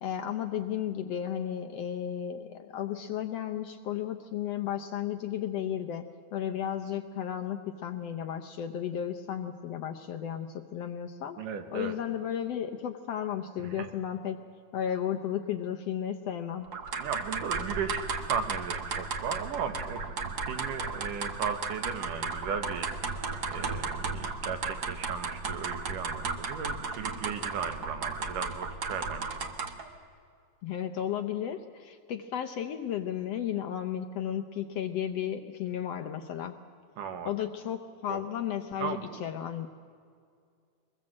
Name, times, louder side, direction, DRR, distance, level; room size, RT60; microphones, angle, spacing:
voice 1, 0.0-11.4 11.7-14.4 14.7-16.7 30.6-36.5 37.2-39.7, left 9 dB, 70° left, 7 dB, 1.6 m, -34 dB
voice 2, 11.4-12.0 13.6-13.9 17.0-22.9 23.5-29.4 37.0-37.3 38.1-38.2 38.8-39.2, right 6 dB, 85° right, 8 dB, 3.0 m, -36 dB
sound 1, 16.7-29.9, right 4 dB, 55° right, 1.1 m, -35 dB
23.5 x 21.5 x 7.5 m, 2.2 s
omnidirectional pair, 3.6 m